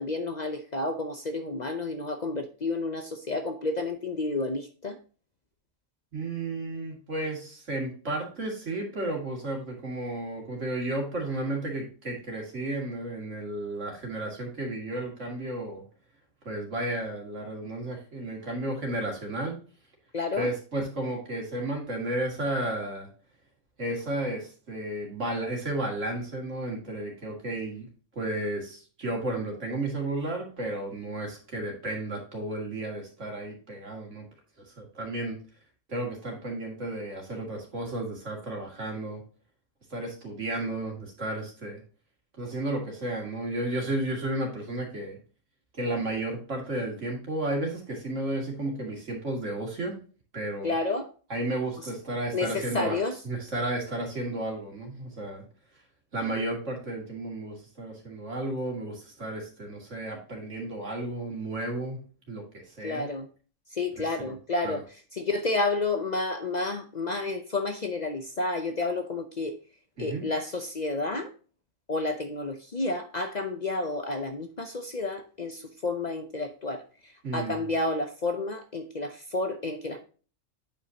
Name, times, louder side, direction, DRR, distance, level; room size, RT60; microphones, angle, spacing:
voice 1, 0.0-5.0 20.1-20.5 50.6-51.1 52.3-53.2 62.8-63.3 63.7-64.8 65.1-69.6 70.0-71.3 71.9-80.1, left 2 dB, 40° left, 6 dB, 0.7 m, -30 dB
voice 2, 6.1-15.8 16.4-19.6 20.4-23.1 23.8-27.9 28.2-34.3 34.8-35.4 35.9-39.2 39.9-41.8 42.4-45.2 45.7-50.0 50.3-50.7 51.3-53.0 53.2-55.4 56.1-62.0 62.3-63.1 64.0-64.3 64.6-64.8 70.0-70.3 77.2-77.6, right 1 dB, 70° right, 0 dB, 2.7 m, -33 dB
8.9 x 5.4 x 2.8 m, 0.37 s
omnidirectional pair, 1.3 m